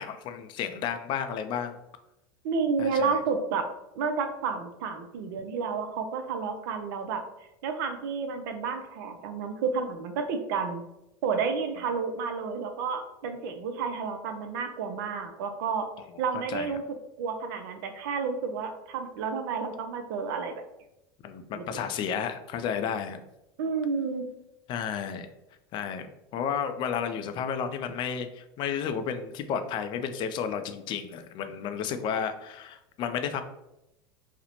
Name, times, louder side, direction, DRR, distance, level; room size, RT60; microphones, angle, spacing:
voice 1, 0.0-1.7 2.8-3.2 16.3-16.7 21.2-23.2 24.7-25.3 25.7-33.4, left 7 dB, 40° left, 8 dB, 0.3 m, -32 dB
voice 2, 2.4-3.7 4.0-7.2 7.6-10.8 11.2-15.9 16.2-16.8 17.2-20.5 21.5-21.6 23.6-24.3, right 5 dB, 65° right, 6 dB, 0.4 m, -30 dB
2.5 x 2.0 x 2.8 m, 0.88 s
hypercardioid pair, 90°, 12 cm